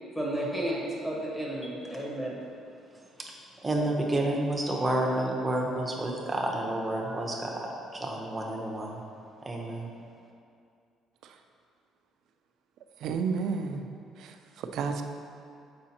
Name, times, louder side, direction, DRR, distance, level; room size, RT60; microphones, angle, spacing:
voice 1, 0.1-2.3, right 1 dB, 10° left, -4 dB, 1.2 m, -32 dB
voice 2, 3.6-9.0 9.4-9.9, right 1 dB, 15° right, -1 dB, 0.7 m, -30 dB
voice 3, 13.0-13.9 14.2-15.0, right 5 dB, 60° right, 6 dB, 0.4 m, -32 dB
7.5 x 4.9 x 2.8 m, 2.4 s
cardioid pair, 145°, 0 cm